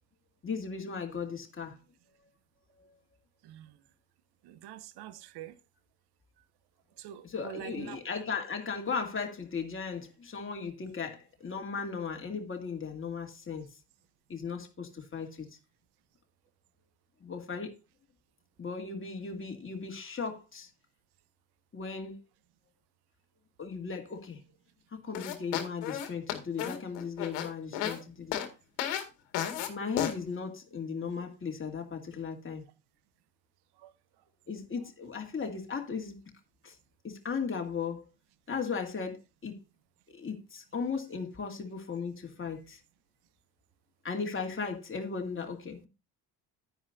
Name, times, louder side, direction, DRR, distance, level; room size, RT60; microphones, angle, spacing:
voice 1, 0.4-1.7 7.2-13.7 14.3-15.5 17.2-17.7 18.6-20.7 21.7-22.2 23.6-24.4 24.9-28.4 29.7-32.6 34.5-36.2 36.6-36.7 37.0-38.1 38.5-39.2 39.4-39.6 40.1-42.8 44.0-45.9, left 5 dB, 25° left, 2.7 m, -36 dB
voice 2, 4.4-5.5 7.0-8.0 33.8-33.9, right 12 dB, 55° right, 1.0 m, -45 dB
sound 1, 25.1-28.0 28.3-28.5 28.8-29.0 29.3-29.7 30.0-30.1, left 10 dB, 65° left, 2.0 m, -33 dB
10.5 x 9.9 x 2.7 m
hypercardioid pair, 50°, 46 cm